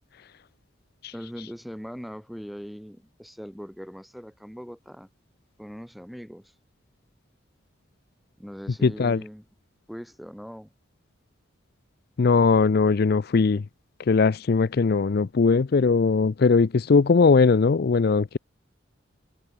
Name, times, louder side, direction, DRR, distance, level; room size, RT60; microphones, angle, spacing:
voice 1, 1.1-5.1 5.6-6.5 8.4-9.5 9.9-10.7, equal, ahead, 4.7 m, -40 dB
voice 2, 8.8-9.2 12.2-13.6 14.1-18.4, left 4 dB, 50° left, 0.4 m, -20 dB
head